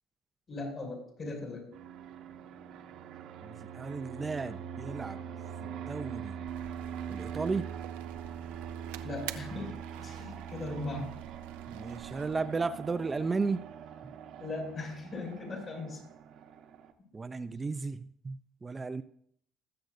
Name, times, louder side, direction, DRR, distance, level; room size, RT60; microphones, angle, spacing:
voice 1, 0.5-1.7 9.0-11.1 14.4-16.1, left 2 dB, 40° left, 0 dB, 5.6 m, -39 dB
Fixed-wing aircraft airplane, 1.7-16.9, right 8 dB, 65° right, 1.1 m, -43 dB
voice 2, 3.4-5.2 5.6-6.4 7.1-7.7 11.7-13.6 14.0-14.1 17.1-19.0, right 4 dB, 25° right, 12 dB, 0.5 m, -34 dB
sound 1, 6.5-12.4, right 12 dB, 85° right, 0.5 m, -49 dB
20.0 x 7.9 x 2.7 m, 0.66 s
supercardioid pair, 75°, 0 cm